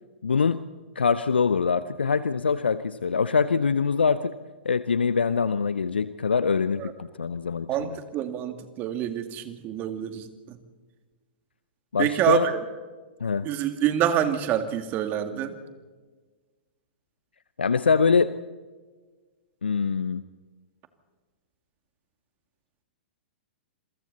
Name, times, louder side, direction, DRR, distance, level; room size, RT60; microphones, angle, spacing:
voice 1, 0.2-0.6 1.0-4.3 4.6-8.0 11.9-12.5 13.2-13.5 17.6-18.3 19.6-20.2, left 5 dB, 80° left, 14 dB, 0.7 m, -24 dB
voice 2, 7.7-10.6 12.0-12.6 13.4-15.5, right 10 dB, 35° right, 8 dB, 2.3 m, -26 dB
27.5 x 22.5 x 4.2 m, 1.4 s
figure-of-eight pair, 110°, 6 cm